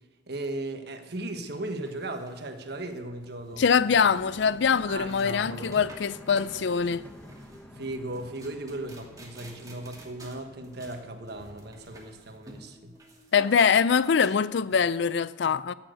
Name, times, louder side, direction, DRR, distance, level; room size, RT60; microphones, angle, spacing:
voice 1, 0.3-3.6 4.9-5.8 7.7-12.9, right 2 dB, 60° right, 1.4 m, -37 dB
sound 1, 1.2-14.8, right 1 dB, 20° right, 2.5 m, -51 dB
sound 2, 2.8-12.2 12.4-13.3, equal, 10° left, 1.1 m, -49 dB
voice 2, 3.6-7.0 13.3-15.7, left 6 dB, 65° left, 0.4 m, -23 dB
14.0 x 7.4 x 7.8 m
head